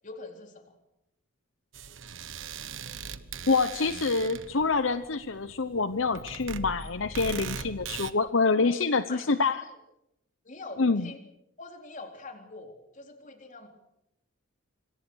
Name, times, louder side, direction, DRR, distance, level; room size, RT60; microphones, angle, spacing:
voice 1, 0.0-0.7 8.4-9.3 9.5-9.8 10.4-11.2 11.6-13.7, left 3 dB, 40° left, 4 dB, 4.0 m, -45 dB
sound 1, 1.7-8.1, right 5 dB, 65° right, 1.3 m, -40 dB
voice 2, 3.5-9.6 10.8-11.1, left 4 dB, 65° left, 11 dB, 0.9 m, -26 dB
26.5 x 26.0 x 6.4 m, 0.83 s
head